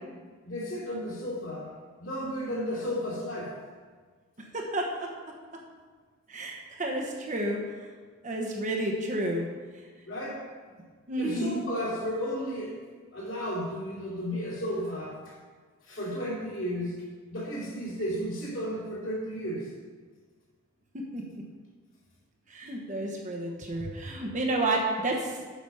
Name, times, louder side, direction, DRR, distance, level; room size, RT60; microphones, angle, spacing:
voice 1, 0.4-1.7 2.0-3.6 10.1-10.4 11.2-12.8 13.1-15.4 15.8-17.0 17.3-19.7, equal, 60° left, -5 dB, 2.8 m, -33 dB
voice 2, 4.4-5.1 6.3-7.6 8.2-9.5 11.1-11.6 21.1-21.4 22.5-25.3, right 1 dB, 35° right, 0 dB, 1.1 m, -30 dB
8.3 x 6.1 x 5.5 m, 1.5 s
head